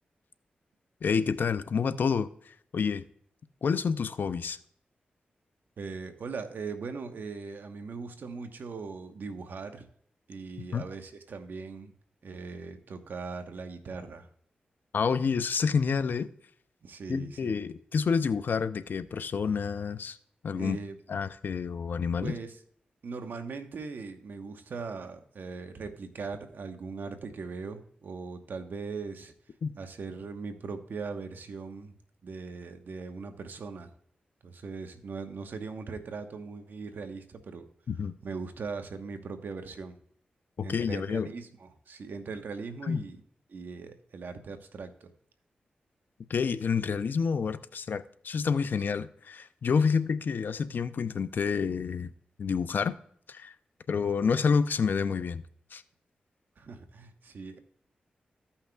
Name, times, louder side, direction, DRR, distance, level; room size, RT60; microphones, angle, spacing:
voice 1, 1.0-2.3 2.7-3.0 3.6-4.6 10.7-10.9 14.9-16.3 17.1-20.2 20.4-20.8 21.1-22.4 29.6-29.7 37.9-38.1 40.6-41.3 42.9-43.0 46.3-52.1 52.4-53.0 53.3-53.5 53.9-55.4 55.7-55.8, left 6 dB, 70° left, 0.5 m, -28 dB
voice 2, 5.8-9.8 10.3-11.9 12.2-14.3 16.8-17.6 20.5-21.0 22.2-22.6 23.0-29.3 29.7-31.9 32.2-33.9 34.4-37.7 38.0-40.0 40.6-43.2 43.5-45.1 49.9-50.0 56.6-57.6, right 4 dB, 70° right, 1.1 m, -40 dB
15.0 x 5.7 x 2.3 m
supercardioid pair, 40°, 3 cm